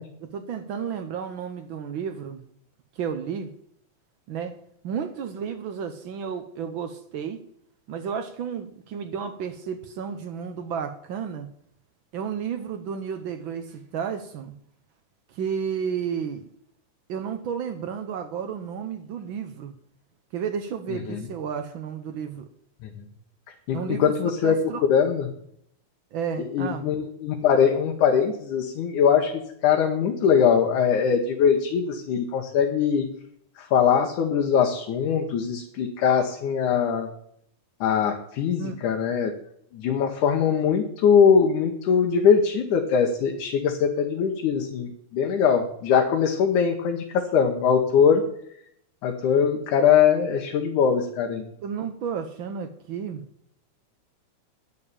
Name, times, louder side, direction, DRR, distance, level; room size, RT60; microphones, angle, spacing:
voice 1, 0.2-2.4 2.9-3.5 4.3-4.6 4.8-7.4 7.9-11.5 12.1-14.5 15.3-16.5 17.1-19.7 20.3-22.5 23.7-24.1 24.4-24.8 26.1-26.8 38.6-38.7 51.6-53.2, right 7 dB, 90° right, 7 dB, 1.0 m, -32 dB
voice 2, 20.9-21.2 23.7-24.6 24.9-25.3 26.5-33.1 33.6-37.1 37.8-39.3 39.7-48.2 49.0-51.5, left 7 dB, 85° left, 3 dB, 2.7 m, -22 dB
10.0 x 6.9 x 8.7 m, 0.69 s
omnidirectional pair, 3.4 m